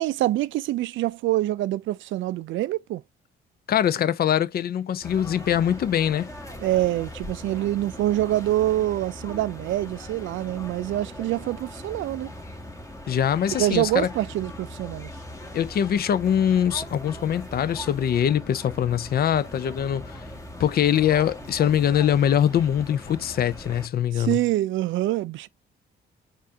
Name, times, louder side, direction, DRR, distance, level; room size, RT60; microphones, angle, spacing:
voice 1, 0.0-3.0 6.6-12.3 13.5-15.1 24.1-25.5, right 15 dB, 75° right, 0.4 m, -25 dB
voice 2, 3.7-6.3 13.1-14.1 15.5-20.2 20.6-24.4, left 9 dB, 50° left, 0.5 m, -23 dB
sound 1, 5.0-23.9, left 1 dB, 15° left, 1.4 m, -40 dB
4.2 x 2.5 x 3.6 m
cardioid pair, 90°, 20 cm